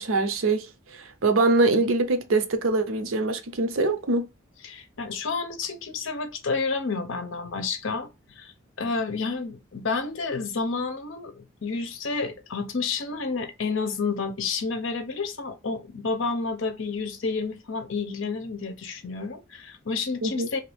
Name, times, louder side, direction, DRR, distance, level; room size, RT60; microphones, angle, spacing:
voice 1, 0.0-4.3 20.2-20.5, right 3 dB, 85° right, 0.6 m, -24 dB
voice 2, 4.6-8.1 8.4-8.5 8.8-20.6, left 4 dB, 70° left, 0.7 m, -30 dB
2.8 x 2.6 x 3.3 m
head